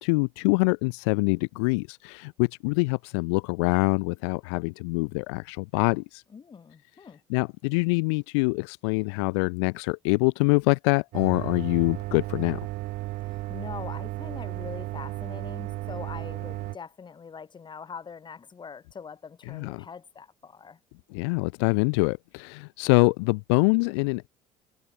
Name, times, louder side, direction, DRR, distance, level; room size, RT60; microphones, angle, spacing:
voice 1, 0.0-6.2 7.3-12.6 19.5-19.8 21.1-24.3, left 31 dB, 80° left, 0.7 m, -25 dB
voice 2, 6.3-7.2 13.2-20.8, left 6 dB, 35° left, 4.6 m, -43 dB
sound 1, 11.1-16.8, right 19 dB, 70° right, 4.0 m, -34 dB
hypercardioid pair, 75°, 14 cm